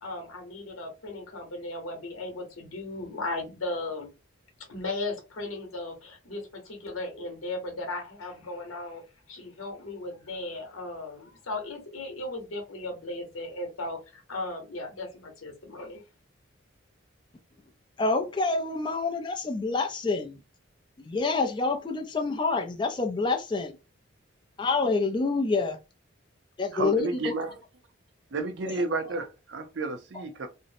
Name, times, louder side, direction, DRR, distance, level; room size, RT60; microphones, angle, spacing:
voice 1, 0.0-4.1 4.7-9.0 9.3-16.0, left 2 dB, 90° left, 0.9 m, -36 dB
voice 2, 18.0-20.4 21.0-23.8 24.6-25.8 26.6-27.3 28.7-28.8 30.1-30.2, left 3 dB, 25° left, 0.3 m, -27 dB
voice 3, 26.7-27.5 28.3-30.5, right 3 dB, 60° right, 0.5 m, -31 dB
2.6 x 2.0 x 2.5 m
head